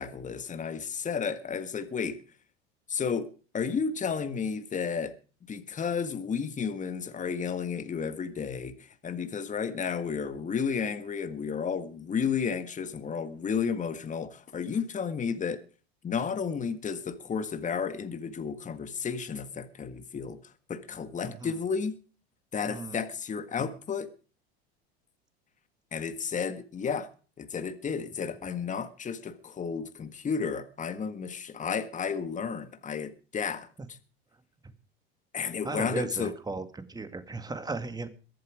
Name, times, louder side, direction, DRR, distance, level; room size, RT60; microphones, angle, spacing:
voice 1, 0.0-2.2 2.9-3.3 3.5-5.1 5.5-15.6 16.0-20.4 20.7-21.9 22.5-24.1 25.9-27.1 27.4-34.0 35.3-36.3, left 6 dB, 25° left, 1.6 m, -32 dB
voice 2, 22.7-23.0 35.6-38.1, right 3 dB, 10° right, 2.0 m, -36 dB
22.5 x 7.8 x 4.9 m
hypercardioid pair, 100°, 32 cm